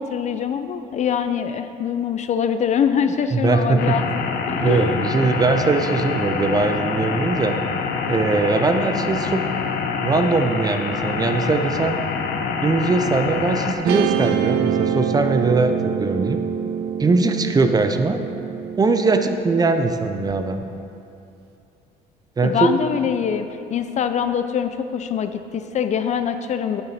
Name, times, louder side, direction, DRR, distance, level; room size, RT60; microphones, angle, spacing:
voice 1, 0.0-4.1 4.5-4.9 22.4-26.8, left 7 dB, 45° left, 9 dB, 0.4 m, -23 dB
voice 2, 3.3-4.0 4.5-7.6 8.1-9.5 10.0-12.0 12.6-16.4 17.0-18.2 18.8-20.6 22.4-22.7, right 3 dB, 20° right, 7 dB, 0.5 m, -20 dB
sound 1, 3.8-13.7, left 5 dB, 70° left, 0.7 m, -26 dB
Guitar, 13.9-20.3, right 8 dB, 75° right, 0.5 m, -26 dB
9.0 x 6.5 x 4.2 m, 2.7 s
cardioid pair, 110°, 17 cm